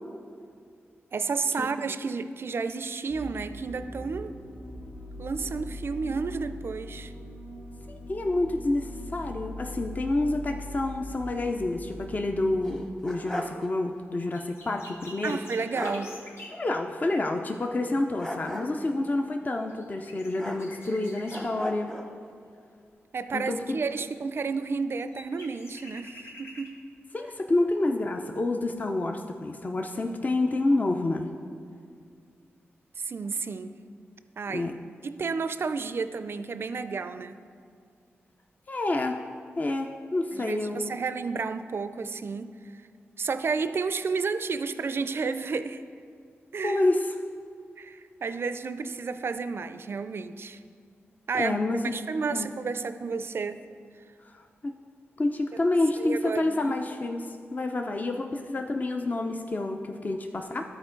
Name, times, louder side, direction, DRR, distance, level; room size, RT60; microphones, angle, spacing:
voice 1, 1.1-4.3 5.2-7.1 15.2-16.1 23.1-26.8 33.0-33.8 34.4-34.7 35.0-37.4 40.3-42.8 43.2-45.8 46.5-46.8 47.8-50.6 51.3-51.6 51.9-53.6 55.5-55.7 56.0-56.7, right 4 dB, 55° right, 11 dB, 0.4 m, -31 dB
sound 1, 3.1-12.6, left 1 dB, 80° left, 2.0 m, -41 dB
voice 2, 7.9-15.4 16.5-21.9 23.3-23.8 27.1-31.3 34.5-34.8 38.7-39.2 39.6-41.0 46.6-47.1 51.3-51.8 52.3-52.5 54.2-54.7 55.2-60.6, left 2 dB, 35° left, 4 dB, 0.5 m, -28 dB
sound 2, 12.6-13.7 14.0-14.1 15.4-15.5 15.7-16.1 18.2-18.9 20.4-21.0 21.3-22.1, equal, 10° left, 0.9 m, -36 dB
sound 3, 14.3-16.6 19.4-19.5 19.7-21.5 24.5-24.6 25.0-26.8 27.3-27.4, left 1 dB, 60° left, 1.1 m, -47 dB
12.0 x 4.4 x 3.8 m, 2.2 s
cardioid pair, 65°, 5 cm